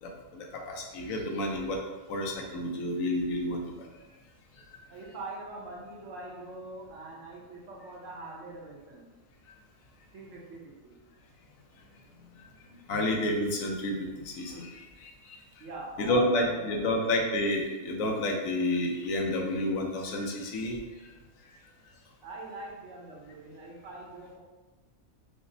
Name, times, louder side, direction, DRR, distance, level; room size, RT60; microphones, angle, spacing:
voice 1, 0.0-1.8 2.1-3.9 4.7-4.8 12.9-15.4 16.0-20.8 21.4-21.5, left 1 dB, 80° left, 0 dB, 1.0 m, -30 dB
voice 2, 4.9-9.1 10.1-11.0 15.6-17.0 22.2-24.4, right 2 dB, 65° right, -2 dB, 1.0 m, -43 dB
5.0 x 2.0 x 2.6 m, 1.2 s
omnidirectional pair, 1.4 m